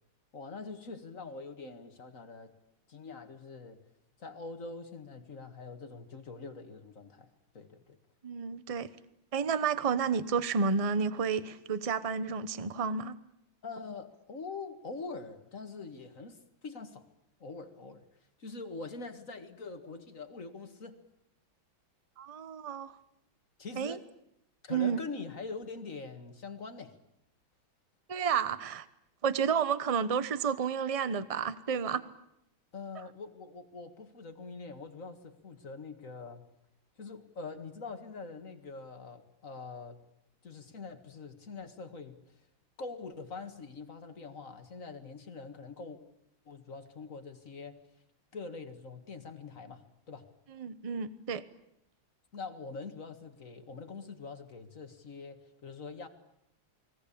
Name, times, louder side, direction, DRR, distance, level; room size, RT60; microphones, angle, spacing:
voice 1, 0.3-2.5 2.9-3.8 4.2-8.0 13.6-17.1 17.4-18.1 18.4-21.0 23.6-24.1 24.6-26.9 32.7-36.4 37.0-40.0 40.4-42.5 42.8-46.0 46.5-47.8 48.3-50.3 52.3-56.1, left 4 dB, 40° left, 7 dB, 2.1 m, -44 dB
voice 2, 8.2-8.9 9.3-13.2 22.2-22.9 23.8-24.0 24.7-25.0 28.1-28.9 29.2-32.1 50.5-51.4, right 6 dB, 30° right, 14 dB, 0.6 m, -31 dB
29.0 x 21.5 x 8.6 m, 0.79 s
omnidirectional pair, 2.3 m